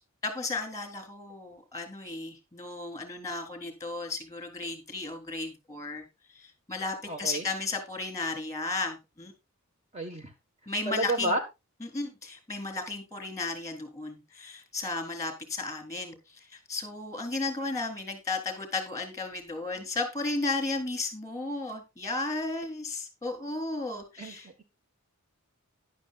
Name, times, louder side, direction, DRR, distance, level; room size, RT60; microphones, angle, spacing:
voice 1, 0.2-6.0 6.3-9.3 10.7-11.4 11.8-24.5, left 3 dB, 15° left, 5 dB, 3.3 m, -34 dB
voice 2, 7.1-7.4 9.9-10.3 10.9-11.4 24.2-24.3, right 1 dB, 30° right, 5 dB, 1.5 m, -30 dB
13.5 x 11.0 x 2.4 m, 0.24 s
head